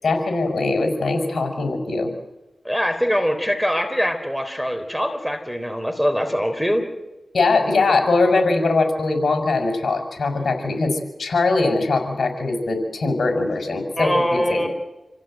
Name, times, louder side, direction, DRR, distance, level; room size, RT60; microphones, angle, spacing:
voice 1, 0.0-2.1 7.3-14.7, left 3 dB, 70° left, 5 dB, 6.0 m, -21 dB
voice 2, 2.6-6.9 14.0-14.7, equal, ahead, 8 dB, 3.4 m, -23 dB
28.0 x 15.5 x 9.1 m, 1.0 s
wide cardioid pair, 70°, 0 cm